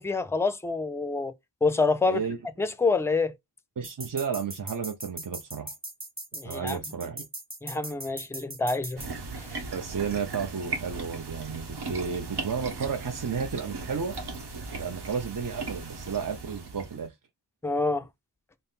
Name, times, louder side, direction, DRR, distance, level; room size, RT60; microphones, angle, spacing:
voice 1, 0.0-1.3 1.6-2.2 2.6-3.3 6.3-6.8 7.6-9.0 9.3-9.6 17.6-18.1, left 3 dB, 5° left, 0.5 m, -27 dB
voice 2, 2.0-2.4 3.8-5.7 6.4-7.2 9.7-14.1 14.8-17.1, right 6 dB, 50° right, 0.7 m, -32 dB
sound 1, 3.8-9.1, right 1 dB, 20° right, 1.5 m, -39 dB
sound 2, 9.0-17.1, right 3 dB, 65° right, 1.0 m, -37 dB
4.2 x 2.0 x 3.6 m
wide cardioid pair, 75°, 42 cm